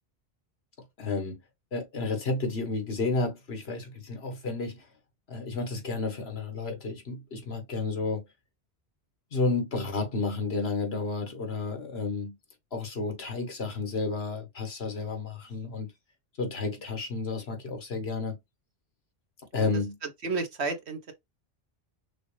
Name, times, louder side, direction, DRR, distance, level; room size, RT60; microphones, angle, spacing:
voice 1, 1.0-1.4 1.7-4.9 5.3-8.2 9.3-12.4 12.7-15.9 16.4-18.4 19.5-19.9, left 3 dB, 75° left, 1.7 m, -31 dB
voice 2, 20.2-21.1, right 4 dB, 85° right, 1.5 m, -31 dB
6.0 x 2.4 x 3.3 m
omnidirectional pair, 1.1 m